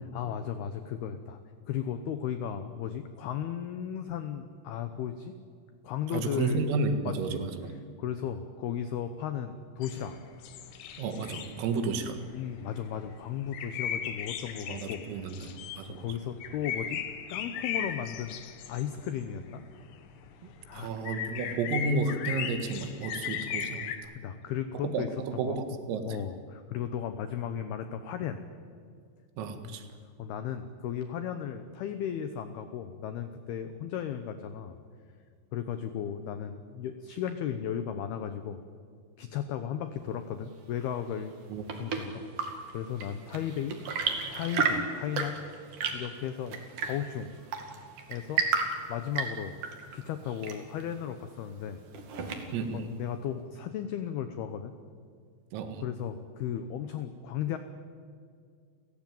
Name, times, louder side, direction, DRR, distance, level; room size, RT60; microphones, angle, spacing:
voice 1, 0.1-1.4 1.7-5.3 5.8-6.7 7.0-7.4 7.7-10.2 11.8-11.9 12.3-15.0 16.0-17.0 17.3-19.6 20.7-20.9 24.1-25.6 26.0-28.4 29.6-29.8 30.2-34.8 35.5-38.6 39.2-41.3 41.7-43.8 44.3-45.5 45.9-47.3 48.1-48.5 48.9-49.6 49.9-51.8 52.1-52.2 52.7-54.7 55.8-57.6, left 9 dB, 90° left, 9 dB, 2.2 m, -35 dB
voice 2, 6.1-7.7 11.0-12.2 14.7-16.1 20.4-24.0 24.9-26.1 29.4-29.9 41.5-41.8 52.5-52.9 55.5-55.8, right 4 dB, 80° right, 7 dB, 4.4 m, -32 dB
sound 1, 9.8-24.0, left 8 dB, 65° left, 3.0 m, -37 dB
Chirp tweet / Engine / Tap, 41.2-52.8, right 5 dB, 50° right, 2.9 m, -34 dB
29.5 x 16.0 x 9.2 m, 2.2 s
omnidirectional pair, 6.0 m